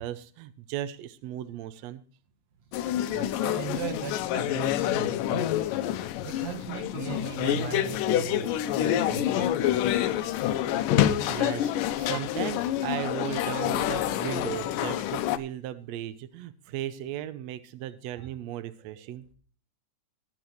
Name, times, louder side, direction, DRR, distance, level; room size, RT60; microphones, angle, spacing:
voice 1, 0.0-2.0 10.1-10.3 11.3-19.2, right 12 dB, 80° right, 12 dB, 1.5 m, -36 dB
sound 1, 2.7-15.4, left 12 dB, 80° left, 2.3 m, -27 dB
voice 2, 3.1-5.7 6.2-10.4, right 6 dB, 55° right, 5 dB, 2.9 m, -38 dB
20.0 x 8.2 x 3.1 m, 0.42 s
omnidirectional pair, 4.0 m